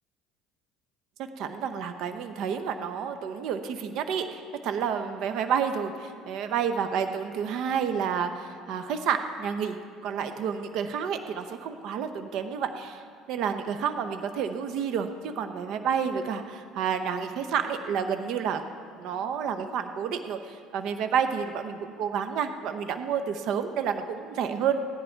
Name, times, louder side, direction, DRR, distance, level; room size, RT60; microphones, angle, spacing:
voice 1, 1.4-9.8 10.0-13.0 13.3-18.6 19.0-25.0, right 7 dB, 65° right, 8 dB, 0.7 m, -30 dB
16.5 x 10.5 x 4.5 m, 2.2 s
cardioid pair, 120°, 0 cm